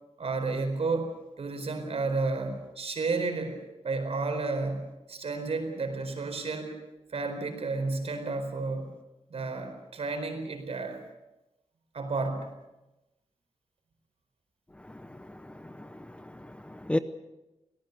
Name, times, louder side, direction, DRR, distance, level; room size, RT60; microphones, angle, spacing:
voice 1, 0.2-6.8 7.1-8.9 9.3-11.0 11.9-12.6, right 3 dB, 60° right, 5 dB, 4.5 m, -32 dB
voice 2, 14.9-17.0, left 1 dB, 10° left, 10 dB, 0.7 m, -35 dB
25.5 x 18.0 x 6.8 m, 1.0 s
wide cardioid pair, 180°, 12 cm